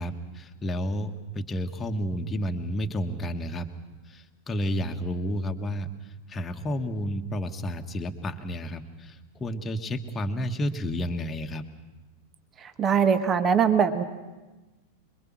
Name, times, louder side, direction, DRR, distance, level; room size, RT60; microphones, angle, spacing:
voice 1, 0.0-3.7 4.1-5.9 6.3-9.1 9.4-11.6, equal, 15° left, 4 dB, 1.5 m, -31 dB
voice 2, 12.6-14.0, right 7 dB, 25° right, 10 dB, 1.4 m, -22 dB
26.0 x 23.5 x 6.2 m, 1.2 s
figure-of-eight pair, 90°, 0 cm